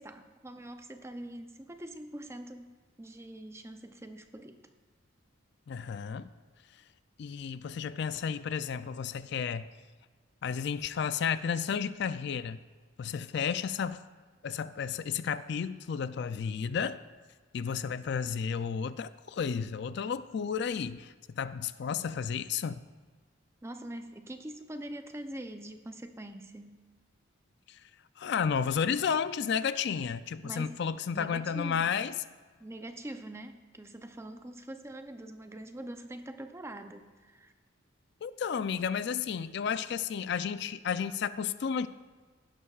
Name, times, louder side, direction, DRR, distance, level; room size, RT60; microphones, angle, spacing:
voice 1, 0.0-4.6 23.6-26.8 30.4-30.8 31.1-31.9 32.6-37.5, right 1 dB, 15° right, 7 dB, 0.5 m, -44 dB
voice 2, 5.7-6.3 7.2-9.7 10.4-12.6 13.0-14.0 14.4-17.0 17.5-22.8 27.7-27.8 28.2-32.1 38.2-41.9, left 7 dB, 55° left, 13 dB, 0.3 m, -32 dB
16.5 x 11.0 x 2.4 m, 1.4 s
head